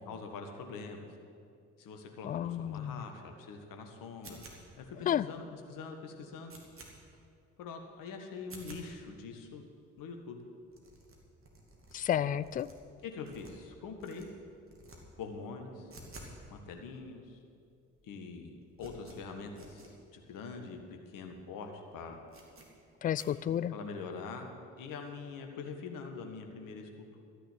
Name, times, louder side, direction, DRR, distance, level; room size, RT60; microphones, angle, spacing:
voice 1, 0.1-1.1 1.8-4.4 4.8-6.6 7.6-9.7 10.0-10.4 13.0-14.3 15.2-15.9 16.5-17.4 18.0-22.2 23.7-24.5 24.8-27.2, left 4 dB, 60° left, 4 dB, 1.7 m, -44 dB
voice 2, 2.2-3.0 5.1-5.2 11.9-12.7 23.0-23.7, left 10 dB, 25° left, 18 dB, 0.3 m, -31 dB
sound 1, 4.2-4.9 5.4-5.5 5.8-5.9 6.2-6.9 7.4-7.5 7.8-7.9 8.4-8.8 9.4-9.5 9.6-9.7 9.9-10.1 10.3-10.4 10.7-11.9 12.4-13.7 14.0-14.2 14.6-15.0 15.3-16.4 16.6-16.7 17.4-17.5 17.6-18.0 18.3-19.9 20.3-20.4 20.7-20.8 21.2-21.4 21.7-21.8 22.3-22.7 23.2-23.3, right 2 dB, 35° right, 2.8 m, -53 dB
13.0 x 6.7 x 9.6 m, 2.4 s
figure-of-eight pair, 45°, 38 cm